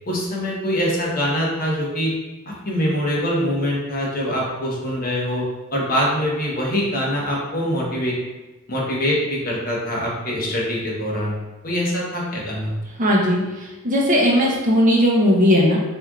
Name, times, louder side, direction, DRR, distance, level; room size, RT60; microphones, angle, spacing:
voice 1, 0.1-2.1 2.5-5.5 5.7-8.2 8.7-11.4 11.6-12.8, equal, 40° left, -4 dB, 1.0 m, -23 dB
voice 2, 13.0-13.4 13.8-15.8, equal, 40° right, -3 dB, 0.7 m, -17 dB
4.3 x 3.5 x 2.4 m, 1.1 s
head